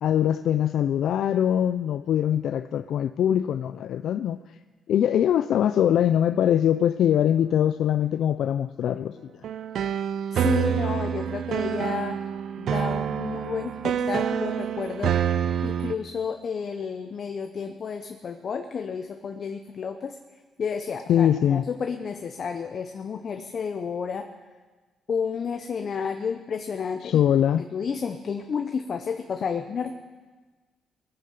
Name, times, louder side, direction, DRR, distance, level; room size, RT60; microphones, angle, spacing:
voice 1, 0.0-4.4 4.9-9.1 21.1-21.7 27.0-27.6, left 10 dB, 70° left, 0.3 m, -22 dB
sound 1, 9.4-15.9, right 9 dB, 70° right, 0.5 m, -27 dB
voice 2, 10.3-12.2 12.6-15.2 15.6-20.2 20.6-24.3 25.1-27.2 27.6-30.0, left 6 dB, 50° left, 0.8 m, -31 dB
20.0 x 8.7 x 5.3 m
cardioid pair, 90°, 0 cm